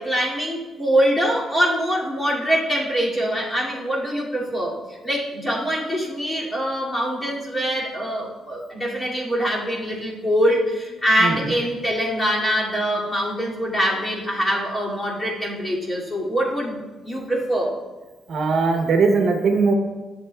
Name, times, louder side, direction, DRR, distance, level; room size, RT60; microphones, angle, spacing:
voice 1, 0.0-16.7 17.0-17.8, equal, 20° left, -5 dB, 2.4 m, -23 dB
voice 2, 18.3-19.7, right 4 dB, 60° right, 4 dB, 0.8 m, -19 dB
11.5 x 7.2 x 2.3 m, 1.2 s
cardioid pair, 90°, 0 cm